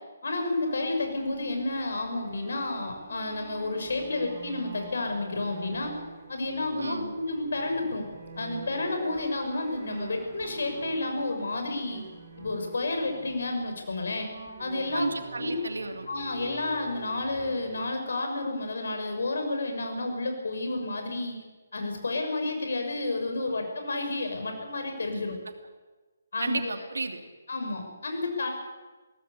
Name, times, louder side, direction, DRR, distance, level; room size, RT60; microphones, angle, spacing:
voice 1, 0.2-5.9 6.3-8.0 8.4-12.0 12.4-14.3 14.6-15.1 15.4-15.6 16.1-21.4 21.7-25.4 26.3-26.8 27.5-28.5, left 2 dB, 60° left, 4 dB, 6.4 m, -31 dB
sound 1, 0.6-17.9, right 4 dB, 25° right, 6.6 m, -45 dB
voice 2, 6.8-7.1 14.9-16.1 26.4-27.2, right 3 dB, 65° right, 6 dB, 2.7 m, -32 dB
22.5 x 18.0 x 8.5 m, 1.3 s
figure-of-eight pair, 140°, 0 cm